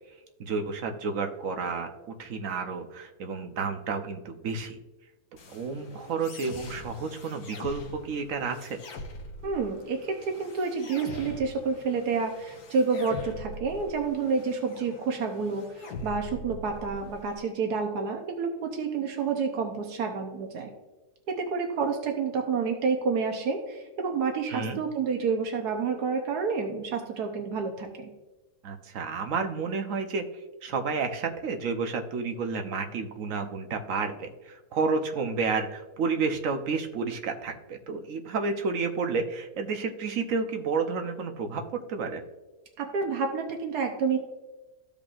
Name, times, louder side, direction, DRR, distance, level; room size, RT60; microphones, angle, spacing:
voice 1, 0.4-1.9 2.2-4.8 5.5-8.8 24.5-24.8 28.6-30.3 30.6-42.2, right 4 dB, 65° right, 5 dB, 1.1 m, -31 dB
sound 1, 5.4-17.4, left 2 dB, 75° left, 1.5 m, -43 dB
voice 2, 9.4-20.7 21.3-28.1 42.8-44.2, right 5 dB, 85° right, 3 dB, 1.4 m, -29 dB
14.0 x 5.2 x 2.5 m, 1.1 s
omnidirectional pair, 1.6 m